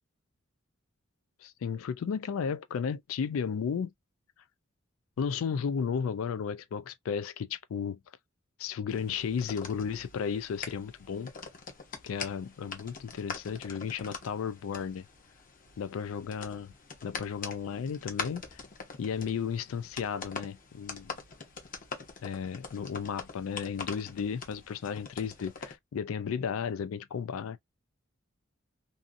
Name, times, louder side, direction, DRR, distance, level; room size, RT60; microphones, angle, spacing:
voice 1, 1.4-3.9 5.2-8.0 8.6-11.3 12.0-15.0 15.8-16.7 17.0-18.6 19.0-21.1 22.2-27.6, left 6 dB, 80° left, 0.3 m, -34 dB
sound 1, 8.9-25.7, left 5 dB, 45° left, 0.7 m, -44 dB
2.7 x 2.5 x 2.4 m
head